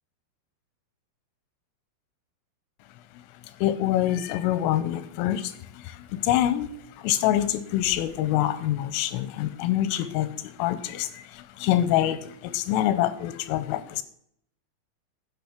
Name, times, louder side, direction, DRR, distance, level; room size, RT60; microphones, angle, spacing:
voice 1, 3.1-14.0, left 12 dB, 90° left, 13 dB, 3.3 m, -26 dB
10.5 x 7.5 x 6.1 m, 0.68 s
omnidirectional pair, 5.8 m